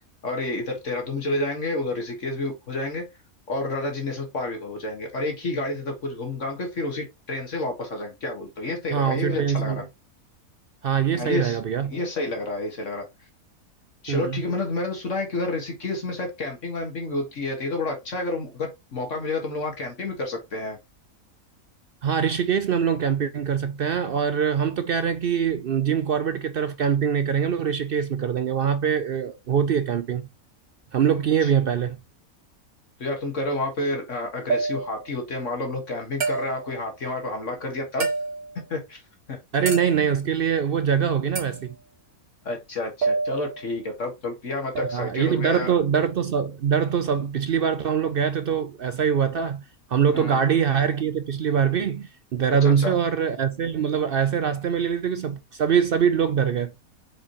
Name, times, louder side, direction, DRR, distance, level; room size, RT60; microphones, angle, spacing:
voice 1, 0.2-3.0 3.5-9.8 11.1-11.6 11.9-13.1 14.0-20.8 31.4-31.5 33.0-38.1 38.7-39.0 39.3-39.4 42.5-45.7 50.1-50.4 52.6-53.0, left 2 dB, 55° left, 1.9 m, -30 dB
voice 2, 8.9-9.8 10.8-12.0 14.1-14.4 22.0-30.2 30.9-32.0 39.5-41.8 44.9-49.6 49.9-56.7, right 7 dB, 65° right, 0.5 m, -23 dB
sound 1, 34.5-35.1 36.2-36.8 38.0-38.6 39.7-40.2 41.4-41.6 43.0-43.7 44.7-45.1, right 4 dB, 85° right, 2.5 m, -28 dB
7.4 x 4.8 x 2.9 m
omnidirectional pair, 1.5 m